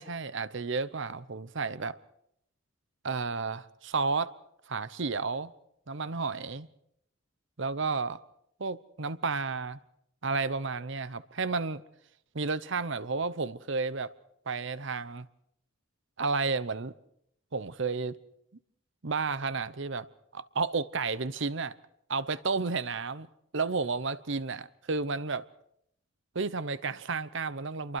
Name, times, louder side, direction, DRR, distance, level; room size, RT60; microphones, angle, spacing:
voice 1, 0.0-2.0 3.0-4.3 4.7-5.5 5.9-6.7 7.6-8.2 8.6-9.8 10.2-11.8 12.3-14.1 14.5-15.3 16.2-16.9 17.5-18.2 19.0-20.1 20.3-21.7 22.1-23.3 23.5-25.4 26.3-28.0, right 4 dB, 60° right, 0.9 m, -32 dB
28.5 x 23.5 x 4.7 m
head